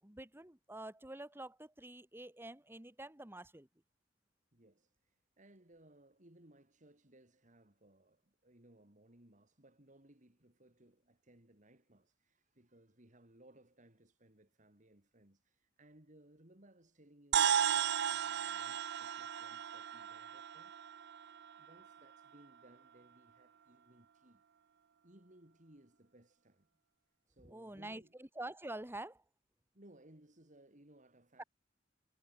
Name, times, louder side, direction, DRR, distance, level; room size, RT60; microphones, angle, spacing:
voice 1, 0.0-3.7 27.4-29.2 31.4-31.5, right 1 dB, 15° right, 1.9 m, -47 dB
voice 2, 4.5-20.8 21.6-24.4 25.0-26.7 27.3-28.1 29.7-31.4, right 1 dB, 45° right, 3.9 m, -64 dB
sound 1, 17.3-21.9, right 9 dB, 65° right, 0.5 m, -35 dB
head